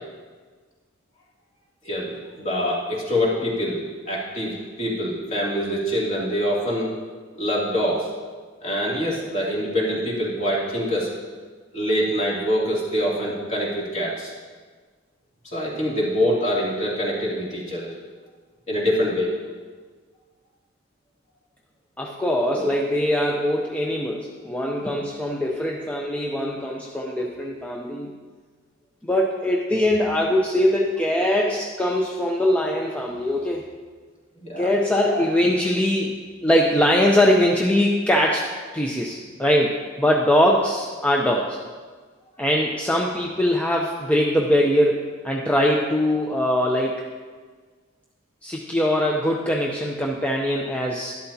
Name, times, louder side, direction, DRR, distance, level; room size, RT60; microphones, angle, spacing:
voice 1, 1.8-6.9 7.4-8.1 8.6-11.1 11.7-14.3 15.5-17.9 18.7-19.3 22.5-22.7 34.4-34.7 35.1-35.2, equal, 35° left, -6 dB, 2.7 m, -25 dB
voice 2, 22.0-28.1 29.0-33.7 34.6-36.2 36.4-38.5 38.7-41.6 42.4-47.0 48.4-51.1, left 1 dB, 5° left, -1 dB, 0.6 m, -22 dB
11.5 x 11.5 x 2.8 m, 1.5 s
head